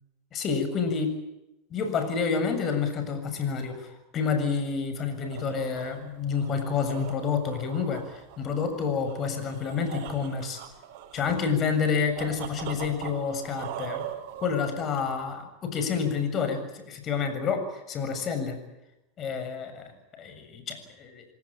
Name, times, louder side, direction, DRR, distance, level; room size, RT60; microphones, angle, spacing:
voice 1, 0.3-1.1 1.7-10.6 11.1-14.1 14.4-18.6 19.2-21.3, left 6 dB, 35° left, 8 dB, 7.3 m, -29 dB
sound 1, 5.0-15.3, right 10 dB, 60° right, 6.7 m, -41 dB
27.5 x 18.0 x 8.9 m, 0.92 s
supercardioid pair, 120°, 0 cm